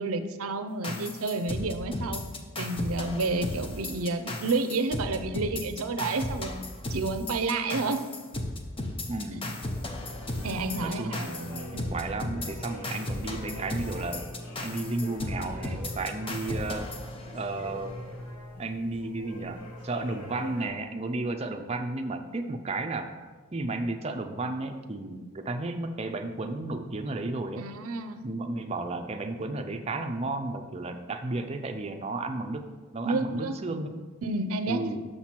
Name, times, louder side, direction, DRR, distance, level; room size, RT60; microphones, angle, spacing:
voice 1, 0.0-2.2 2.6-6.6 6.9-8.0 9.3-9.4 10.4-11.2 11.7-11.9 27.6-28.3 33.0-33.5 34.2-34.8, right 3 dB, 75° right, 9 dB, 0.5 m, -30 dB
sound 1, 0.8-17.7, left 1 dB, 25° left, 0.6 m, -35 dB
voice 2, 9.1-9.5 10.8-14.2 14.6-16.9 17.3-17.9 18.6-23.1 23.5-27.7 28.2-32.6 32.9-34.0 34.7-35.0, right 2 dB, 25° right, 6 dB, 0.4 m, -33 dB
sound 2, 9.6-20.7, left 1 dB, 90° left, 1.3 m, -42 dB
6.6 x 5.8 x 4.5 m, 1.4 s
head